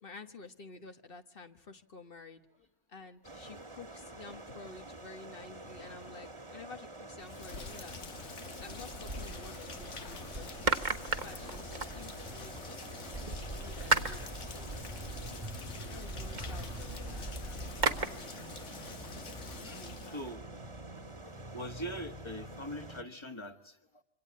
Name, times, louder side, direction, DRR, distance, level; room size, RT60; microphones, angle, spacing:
voice 1, 0.0-2.4 2.9-8.0 8.6-12.8 13.2-14.8 15.0-15.2 15.9-18.3 19.6-20.2, left 4 dB, 50° left, 8 dB, 1.6 m, -51 dB
sound 1, 3.2-23.0, right 2 dB, 25° right, 1.7 m, -46 dB
Rain, 7.2-20.3, left 4 dB, 90° left, 1.9 m, -46 dB
sound 2, 8.7-9.9 10.3-12.5 13.1-18.1, right 3 dB, 40° right, 1.4 m, -36 dB
voice 2, 19.6-20.5 21.2-24.0, equal, 25° left, 8 dB, 1.8 m, -43 dB
26.5 x 25.5 x 8.5 m, 0.74 s
omnidirectional pair, 1.2 m